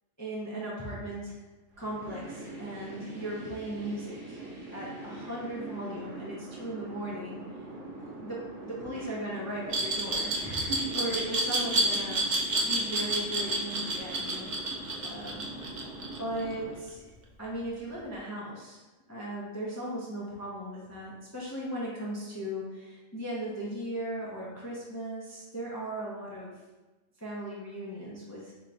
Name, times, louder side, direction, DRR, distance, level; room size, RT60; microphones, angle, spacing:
voice 1, 0.2-1.4 1.8-4.4 4.7-7.4 8.2-14.5 15.0-15.5 16.2-17.0 17.4-18.8 19.1-26.5 27.2-28.5, right 1 dB, 20° left, -6 dB, 0.4 m, -37 dB
sound 1, 1.7-16.7, right 2 dB, 70° right, 1.1 m, -43 dB
Glass, 9.7-16.5, right 2 dB, 50° right, 0.6 m, -29 dB
3.3 x 2.9 x 3.8 m, 1.2 s
omnidirectional pair, 1.3 m